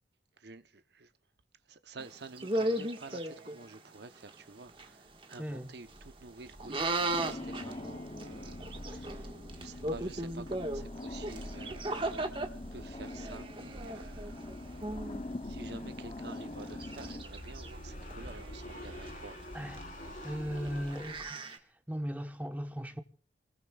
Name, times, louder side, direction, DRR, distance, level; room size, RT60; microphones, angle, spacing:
voice 1, 0.4-1.1 1.7-12.3 12.7-14.4 14.7-14.9 15.4-19.4, right 3 dB, 60° right, 0.8 m, -50 dB
sound 1, 2.0-3.8 4.3-4.4 4.6-4.8 5.2-5.4 5.6-6.0 6.5-12.5 13.0-15.2 15.8-15.9 16.4-17.7 18.0-21.6, right 1 dB, 30° right, 1.6 m, -37 dB
sound 2, 4.8-4.9 5.1-5.2 5.5-21.2, equal, 45° left, 4.0 m, -48 dB
voice 2, 5.4-5.8 19.5-19.8 20.2-21.4 21.9-23.0, equal, 10° right, 1.0 m, -37 dB
sound 3, 7.1-17.2, left 2 dB, 30° left, 0.7 m, -44 dB
27.0 x 20.5 x 2.4 m
head